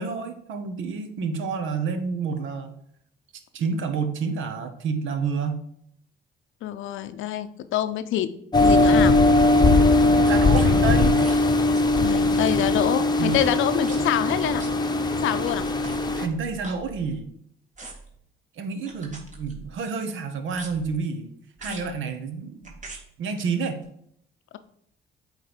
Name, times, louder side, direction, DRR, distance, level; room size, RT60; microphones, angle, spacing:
voice 1, 0.0-2.7 3.5-5.6 10.1-11.2 13.2-13.4 16.2-17.3 18.6-21.3 21.6-22.8 23.2-23.8, right 5 dB, 80° right, 8 dB, 0.9 m, -29 dB
voice 2, 6.6-8.3 8.6-9.2 12.0-14.6 15.2-15.6 21.7-22.0, left 11 dB, 80° left, 12 dB, 0.6 m, -26 dB
sound 1, 8.5-16.3, left 2 dB, 20° left, 0.8 m, -20 dB
sound 2, 10.5-10.7 11.2-11.4 11.7-12.0 12.3-12.7 13.3-13.5 13.8-14.0 14.6-14.7 15.4-17.3 17.8-18.2 18.9-19.8 20.5-21.0 21.6-21.9 22.6-23.0 23.8-23.9, right 3 dB, 40° right, 1.8 m, -42 dB
8.1 x 3.2 x 5.1 m, 0.69 s
cardioid pair, 90°, 20 cm